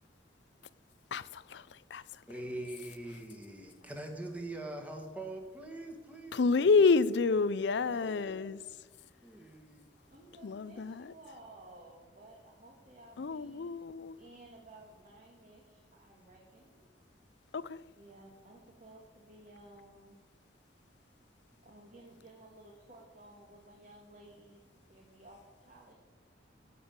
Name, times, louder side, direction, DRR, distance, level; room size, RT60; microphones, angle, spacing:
voice 1, 1.1-2.2 6.3-8.6 10.4-11.1 13.2-14.2 17.5-17.8, left 4 dB, 65° left, 0.4 m, -29 dB
voice 2, 2.3-6.7 7.8-9.9, right 1 dB, 10° right, 1.8 m, -44 dB
voice 3, 10.1-13.7 14.2-16.9 18.0-20.2 21.6-25.9, right 1 dB, 40° right, 1.8 m, -55 dB
15.0 x 5.5 x 8.7 m
head